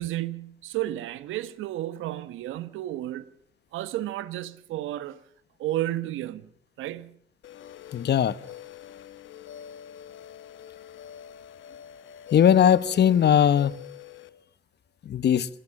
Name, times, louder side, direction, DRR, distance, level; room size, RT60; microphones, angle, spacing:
voice 1, 0.0-3.3 3.7-5.2 5.6-6.5 6.8-7.2, right 14 dB, 90° right, 1.4 m, -32 dB
sound 1, 7.4-14.3, left 10 dB, 75° left, 2.2 m, -45 dB
voice 2, 7.9-8.4 12.3-13.7 15.0-15.5, left 9 dB, 55° left, 1.3 m, -19 dB
27.0 x 17.0 x 7.3 m
cardioid pair, 90°, 20 cm